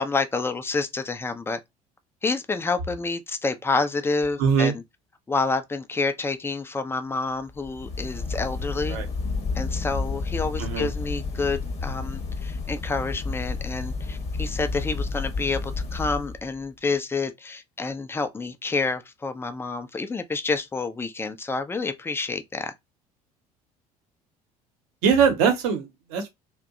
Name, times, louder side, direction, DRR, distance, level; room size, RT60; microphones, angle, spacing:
voice 1, 0.0-1.6 2.2-4.8 5.3-9.0 9.5-22.7, left 3 dB, 10° left, 0.5 m, -28 dB
voice 2, 4.4-4.7 8.9-9.1 10.6-10.9 25.0-26.3, right 6 dB, 60° right, 0.9 m, -22 dB
sound 1, 7.5-16.7, left 4 dB, 35° left, 1.0 m, -31 dB
2.5 x 2.1 x 2.5 m
figure-of-eight pair, 60°, 20 cm